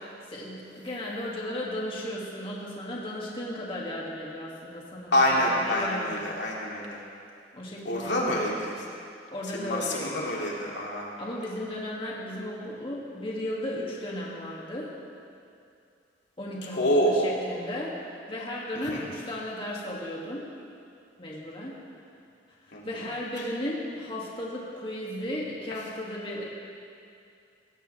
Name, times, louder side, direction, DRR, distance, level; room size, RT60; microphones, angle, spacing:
voice 1, 0.3-6.2 7.5-8.6 9.3-10.2 11.2-14.9 16.4-17.9 18.3-20.4 21.2-21.8 22.7-26.4, left 1 dB, 30° left, -5 dB, 2.3 m, -35 dB
voice 2, 5.1-7.0 7.8-8.7 9.5-11.1 16.7-17.3 18.9-19.0 22.7-22.8, equal, 70° left, -3 dB, 2.6 m, -26 dB
21.0 x 17.5 x 3.4 m, 2.5 s
head